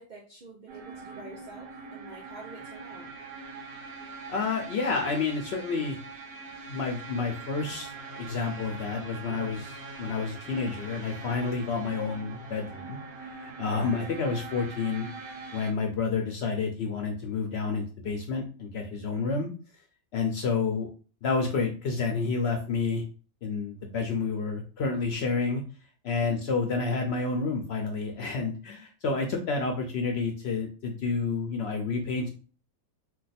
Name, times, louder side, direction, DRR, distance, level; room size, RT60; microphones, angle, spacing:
voice 1, 0.0-3.1 26.2-26.4, right 3 dB, 75° right, -2 dB, 0.4 m, -47 dB
sound 1, 0.7-15.7, right 3 dB, 45° right, 0.8 m, -43 dB
voice 2, 4.3-6.0 6.7-7.9 8.2-13.0 13.2-15.1 15.5-19.5 20.1-20.9 21.2-23.0 23.4-25.6 26.0-32.3, left 4 dB, 65° left, 2 dB, 0.7 m, -29 dB
2.5 x 2.2 x 4.0 m, 0.37 s
omnidirectional pair, 1.5 m